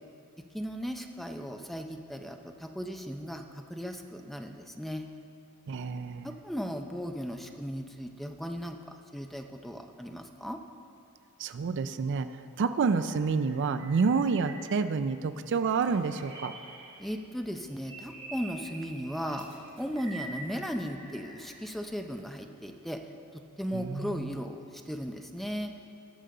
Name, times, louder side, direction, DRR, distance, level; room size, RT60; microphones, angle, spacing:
voice 1, 0.5-3.4 3.7-5.1 6.2-8.8 9.1-10.6 17.0-19.5 19.8-23.0 23.3-24.6 24.9-25.7, equal, ahead, 4 dB, 0.5 m, -36 dB
voice 2, 5.7-6.4 11.4-12.3 12.6-16.5 23.7-24.4, right 5 dB, 55° right, 11 dB, 0.4 m, -29 dB
sound 1, 12.9-15.0 15.3-17.2 17.6-21.8, right 2 dB, 30° right, 2.3 m, -47 dB
19.5 x 6.7 x 3.8 m, 2.5 s
head